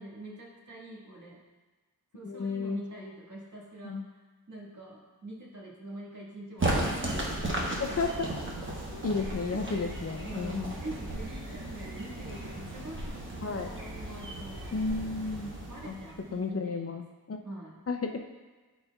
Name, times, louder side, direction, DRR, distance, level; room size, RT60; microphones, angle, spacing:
voice 1, 0.0-1.4 2.1-4.0 4.5-7.4 8.7-9.1 9.5-9.7 10.2-15.3 15.7-17.0 17.4-17.8, right 1 dB, 50° right, -5 dB, 1.7 m, -44 dB
voice 2, 2.2-2.8 3.8-4.0 7.8-8.3 9.0-10.7 13.4-13.7 14.7-15.6 15.8-16.0 16.3-17.4 17.9-18.2, left 4 dB, 40° left, 5 dB, 0.5 m, -32 dB
sound 1, 6.6-16.4, right 1 dB, 30° right, 1.1 m, -35 dB
12.5 x 4.1 x 2.3 m, 1.3 s
wide cardioid pair, 105°, 38 cm